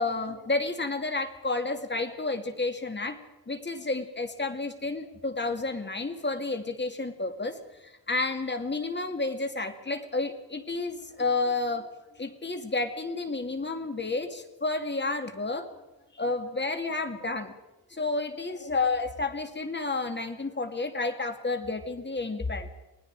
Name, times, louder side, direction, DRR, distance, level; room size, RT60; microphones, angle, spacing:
voice 1, 0.0-3.2 3.5-11.9 12.2-15.7 16.1-17.5 17.9-22.7, left 3 dB, 30° left, 7 dB, 2.3 m, -31 dB
29.5 x 19.5 x 4.8 m, 0.99 s
cardioid pair, 100°, 38 cm